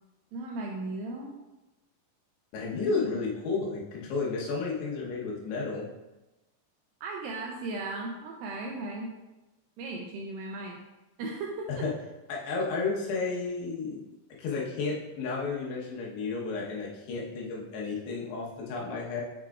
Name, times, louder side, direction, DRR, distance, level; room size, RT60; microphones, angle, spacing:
voice 1, 0.3-1.3 7.0-9.1 9.8-10.8 11.2-11.7, right 2 dB, 80° right, 0 dB, 2.1 m, -36 dB
voice 2, 2.5-5.9 11.8-11.9 12.3-14.0 14.4-19.2, left 4 dB, 90° left, -3 dB, 3.2 m, -32 dB
7.1 x 6.0 x 2.4 m, 1.0 s
omnidirectional pair, 4.6 m